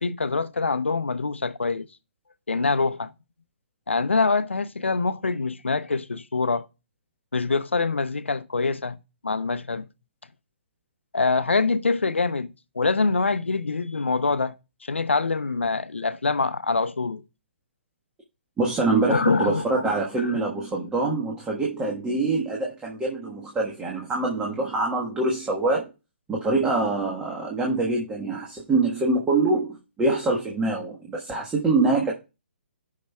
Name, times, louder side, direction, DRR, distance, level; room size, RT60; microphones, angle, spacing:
voice 1, 0.0-1.9 2.5-3.1 3.9-6.7 7.3-9.0 9.2-9.9 11.1-14.5 14.8-17.2 19.1-19.9 20.3-20.4, left 4 dB, 85° left, 0.6 m, -25 dB
voice 2, 18.6-25.9 26.3-32.2, right 3 dB, 15° right, 1.4 m, -25 dB
16.5 x 5.8 x 2.3 m
figure-of-eight pair, 135°, 6 cm